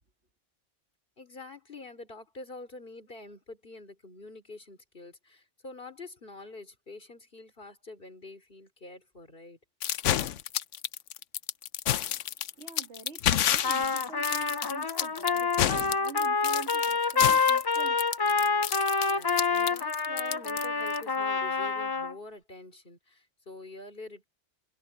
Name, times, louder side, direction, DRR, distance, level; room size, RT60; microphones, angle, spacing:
voice 1, 1.2-9.6 19.0-24.3, left 3 dB, 50° left, 3.7 m, -46 dB
sound 1, 9.8-21.0, left 11 dB, 85° left, 1.1 m, -29 dB
voice 2, 12.0-18.6, right 6 dB, 70° right, 2.3 m, -47 dB
Trumpet, 13.6-22.1, left 4 dB, 30° left, 0.4 m, -27 dB
omnidirectional pair, 1.2 m